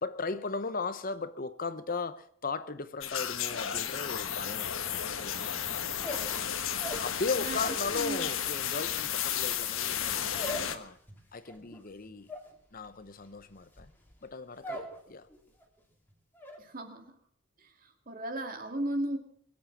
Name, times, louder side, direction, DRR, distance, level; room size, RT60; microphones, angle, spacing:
voice 1, 0.0-4.7 5.2-5.6 7.0-11.0 11.3-12.3 12.7-13.9 14.2-15.3, left 4 dB, 40° left, 0.8 m, -37 dB
sound 1, 3.0-10.8, left 9 dB, 70° left, 1.4 m, -33 dB
sound 2, 6.0-7.9 8.2-15.0 15.3-15.8 16.1-16.6, equal, 10° left, 2.7 m, -42 dB
voice 2, 7.4-8.3 16.6-17.1 17.6-19.2, right 1 dB, 40° right, 2.2 m, -36 dB
22.5 x 8.6 x 7.3 m
head